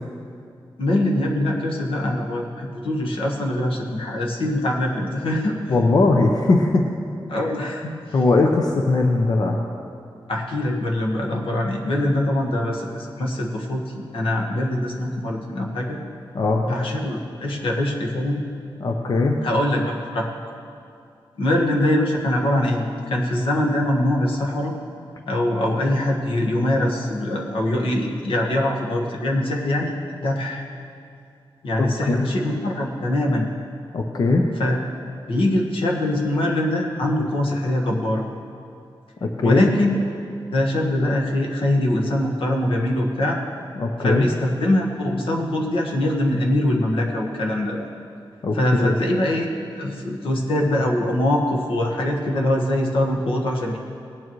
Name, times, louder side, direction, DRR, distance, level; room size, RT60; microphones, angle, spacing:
voice 1, 0.8-5.6 7.3-8.2 10.3-16.0 16.7-18.4 19.4-20.3 21.4-24.7 25.3-29.9 30.2-30.6 31.6-33.5 34.6-34.8 35.3-38.2 39.4-39.9 40.5-43.4 44.0-47.9 48.5-49.5 49.7-53.8, left 1 dB, 85° left, 0 dB, 1.5 m, -23 dB
voice 2, 5.7-6.8 8.1-9.6 16.3-16.6 18.8-19.4 32.0-32.2 33.9-34.5 39.2-39.6 43.8-44.3 48.4-48.9, left 3 dB, 45° left, 2 dB, 0.7 m, -19 dB
18.0 x 8.9 x 3.1 m, 2.4 s
wide cardioid pair, 180°, 9 cm